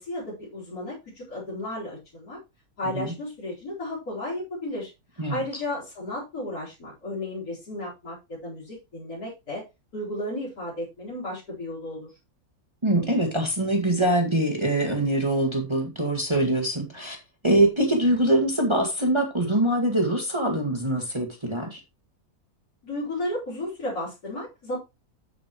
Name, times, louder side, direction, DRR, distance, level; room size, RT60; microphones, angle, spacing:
voice 1, 0.0-2.4 2.8-9.6 9.9-12.1 22.8-24.8, left 1 dB, 75° left, 5.0 m, -34 dB
voice 2, 12.8-17.2 17.4-21.8, right 1 dB, 20° right, 2.0 m, -23 dB
9.7 x 8.5 x 3.1 m
omnidirectional pair, 1.6 m